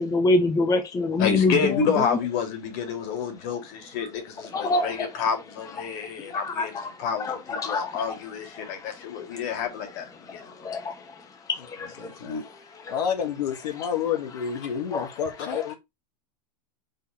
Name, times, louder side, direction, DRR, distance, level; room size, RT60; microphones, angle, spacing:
voice 1, 0.0-1.8 4.5-5.1 6.3-8.2 8.5-8.9 9.3-9.4 10.3-11.1 11.5-12.1 12.8-13.0 14.9-15.1, left 3 dB, 15° left, 1.0 m, -26 dB
voice 2, 1.2-10.7 12.0-13.0, left 6 dB, 50° left, 2.6 m, -29 dB
voice 3, 12.9-15.7, left 8 dB, 75° left, 1.8 m, -28 dB
5.1 x 4.4 x 5.0 m
hypercardioid pair, 125°, 21 cm